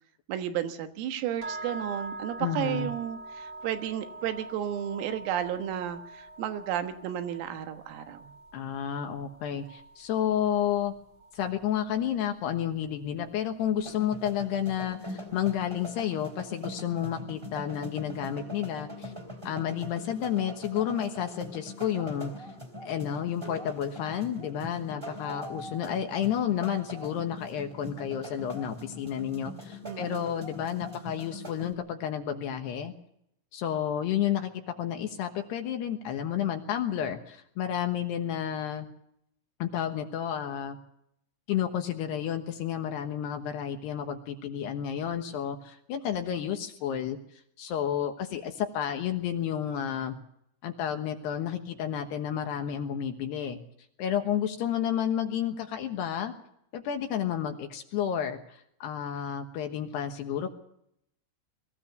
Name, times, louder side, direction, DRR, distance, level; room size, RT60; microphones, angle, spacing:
voice 1, 0.3-8.3 29.8-30.3, right 10 dB, 85° right, 7 dB, 4.2 m, -33 dB
sound 1, 1.4-11.5, right 2 dB, 35° right, 2.0 m, -44 dB
voice 2, 2.4-2.9 8.5-10.9 11.3-19.1 19.4-22.5 22.9-32.9 33.5-38.9 39.6-40.8 41.5-47.2 47.6-50.2 50.6-53.6 54.0-56.3 56.7-60.5, left 9 dB, 70° left, 6 dB, 2.8 m, -31 dB
sound 2, 13.8-31.7, equal, 5° right, 2.2 m, -42 dB
22.0 x 15.5 x 7.9 m, 0.74 s
omnidirectional pair, 5.9 m